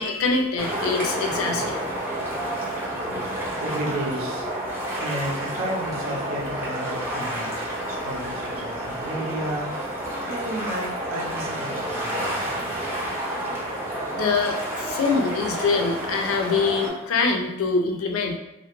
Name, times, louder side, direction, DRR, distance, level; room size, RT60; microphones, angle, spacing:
voice 1, 0.0-1.8 12.1-12.5 14.1-18.4, left 4 dB, 75° left, 3 dB, 0.4 m, -24 dB
sound 1, 0.6-16.9, right 1 dB, 10° right, 0.5 m, -30 dB
voice 2, 3.0-4.6 4.9-12.8, right 1 dB, 75° right, -1 dB, 0.6 m, -33 dB
2.2 x 2.0 x 2.9 m, 0.87 s
head